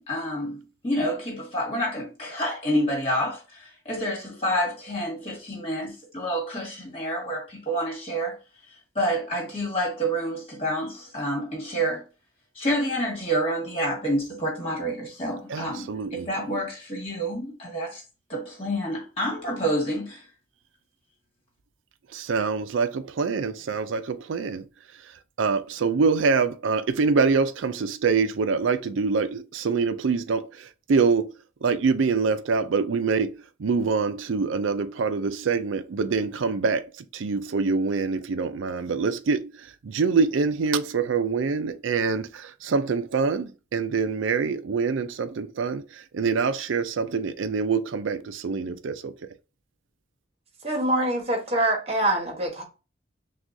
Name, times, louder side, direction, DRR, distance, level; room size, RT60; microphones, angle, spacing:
voice 1, 0.0-8.4 9.0-12.1 12.6-18.0 18.3-20.2, equal, 30° left, 1.8 m, -28 dB
voice 2, 15.5-16.3 22.1-24.7 25.0-25.1 25.4-31.3 31.6-49.1, right 4 dB, 85° right, 0.4 m, -25 dB
voice 3, 50.6-52.6, right 1 dB, 30° right, 1.1 m, -24 dB
6.0 x 2.4 x 2.6 m
head